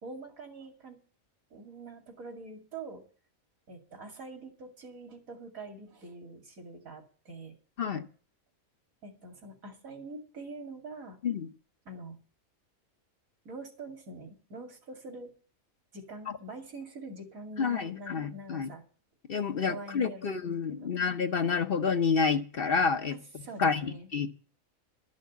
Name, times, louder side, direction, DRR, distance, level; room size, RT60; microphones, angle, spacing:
voice 1, 0.0-1.0 1.5-3.0 3.7-7.6 9.0-11.2 11.8-12.2 13.4-15.3 15.9-18.8 19.7-20.9 23.1-24.1, right 2 dB, 75° right, 2.9 m, -45 dB
voice 2, 17.6-18.7 19.3-24.3, left 5 dB, 50° left, 0.9 m, -29 dB
12.5 x 6.4 x 9.3 m
omnidirectional pair, 1.5 m